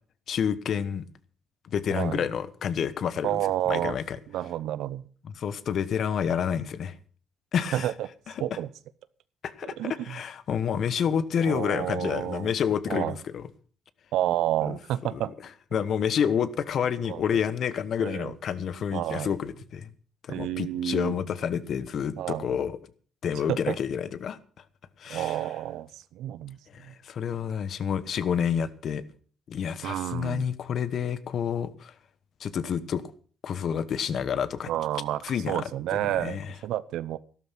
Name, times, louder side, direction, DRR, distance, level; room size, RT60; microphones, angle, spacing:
voice 1, 0.3-1.0 1.6-3.4 3.7-4.2 5.2-7.0 7.5-7.9 9.4-13.4 14.6-14.8 15.1-15.2 15.7-19.9 20.2-22.8 23.2-24.4 25.0-25.4 26.7-29.0 29.5-31.9 32.4-33.0 33.4-34.7 35.2-35.6 35.9-36.5, left 8 dB, 65° left, 1.1 m, -29 dB
voice 2, 1.9-2.3 3.2-4.0 4.3-5.1 7.7-8.1 8.4-8.7 9.6-10.2 11.4-12.5 12.9-13.2 14.1-15.3 17.1-17.4 18.0-18.3 18.9-19.3 20.3-21.2 22.2-22.5 23.5-23.8 25.1-27.0 29.8-30.5 34.7-35.2 35.5-37.2, right 12 dB, 85° right, 0.7 m, -30 dB
13.0 x 12.5 x 5.9 m
cardioid pair, 90°, 0 cm